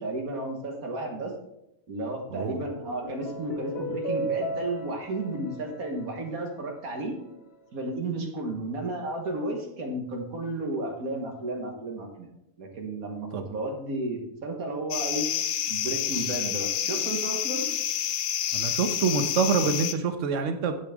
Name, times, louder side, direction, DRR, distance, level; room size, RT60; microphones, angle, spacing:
voice 1, 0.0-1.3 1.9-7.1 7.7-12.3 12.6-15.3 15.7-17.7, right 2 dB, 90° right, 1 dB, 1.8 m, -33 dB
sound 1, 2.3-6.9, right 1 dB, 45° left, 1.2 m, -36 dB
sound 2, 14.9-19.9, left 10 dB, 80° left, 1.1 m, -29 dB
voice 2, 18.5-20.7, right 5 dB, 65° right, 8 dB, 1.2 m, -26 dB
9.7 x 7.7 x 3.6 m, 0.85 s
omnidirectional pair, 1.5 m